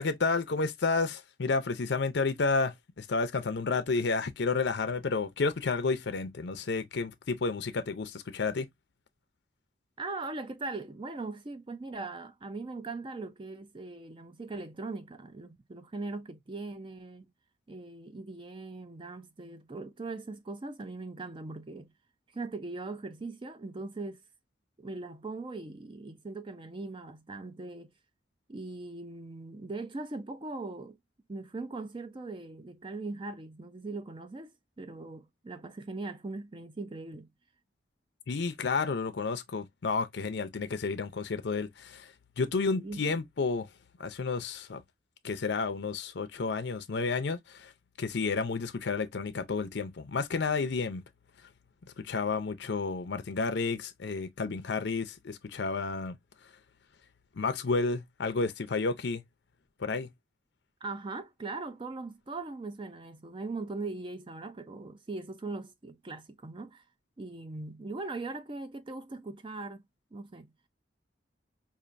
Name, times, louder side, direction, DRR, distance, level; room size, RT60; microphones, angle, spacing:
voice 1, 0.0-8.7 38.3-42.1 42.4-43.7 44.0-44.8 45.2-47.7 48.0-51.0 52.0-56.2 57.4-59.2 59.8-60.1, left 4 dB, 60° left, 0.5 m, -31 dB
voice 2, 10.0-17.2 17.7-21.9 22.3-24.2 24.8-27.9 28.5-31.0 31.3-37.3 42.7-43.0 60.8-66.8 67.2-69.8 70.1-70.5, right 3 dB, 25° right, 0.4 m, -40 dB
5.0 x 2.5 x 2.5 m
head